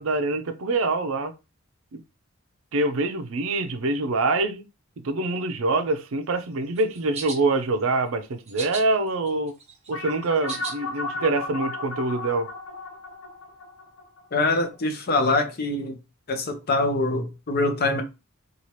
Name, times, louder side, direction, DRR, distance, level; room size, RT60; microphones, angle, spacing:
voice 1, 0.0-1.3 1.9-2.0 2.7-4.6 5.0-9.5 9.9-12.5, right 2 dB, 75° right, 0.5 m, -25 dB
sound 1, 6.8-7.4 8.5-8.8 9.3-10.7, right 5 dB, 30° right, 0.8 m, -35 dB
sound 2, 9.9-14.8, left 2 dB, 90° left, 0.9 m, -35 dB
voice 2, 14.3-16.0 16.3-18.0, left 2 dB, 45° left, 0.6 m, -24 dB
2.8 x 2.4 x 3.1 m
head